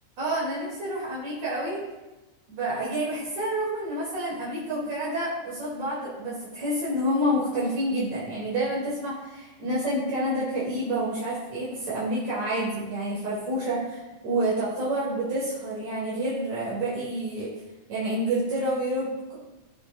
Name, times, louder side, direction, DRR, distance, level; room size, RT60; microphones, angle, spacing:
voice 1, 0.2-1.8 2.5-17.5 17.9-19.4, right 1 dB, 60° right, -8 dB, 3.3 m, -28 dB
16.5 x 5.9 x 2.2 m, 1.1 s
omnidirectional pair, 3.6 m